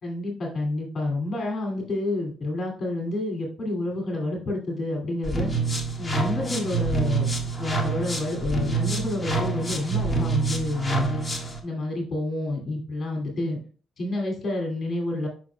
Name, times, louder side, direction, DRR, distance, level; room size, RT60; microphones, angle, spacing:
voice 1, 0.0-5.5 6.0-7.3 7.6-11.2 11.6-13.6 14.0-15.3, left 2 dB, 50° left, 1 dB, 2.5 m, -29 dB
sound 1, 5.2-11.6, right 3 dB, 20° left, 1.5 m, -27 dB
7.4 x 6.0 x 2.3 m, 0.40 s
cardioid pair, 90°, 0 cm